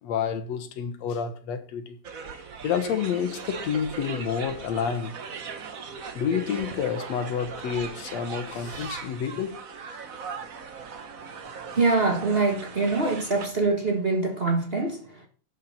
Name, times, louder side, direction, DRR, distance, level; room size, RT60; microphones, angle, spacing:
voice 1, 0.0-2.0 2.6-5.2 6.2-9.6, left 7 dB, 65° left, 2.2 m, -29 dB
sound 1, 2.0-13.5, right 5 dB, 85° right, 0.7 m, -39 dB
voice 2, 11.8-15.3, right 3 dB, 40° right, 0.8 m, -24 dB
11.5 x 9.6 x 4.2 m
omnidirectional pair, 3.4 m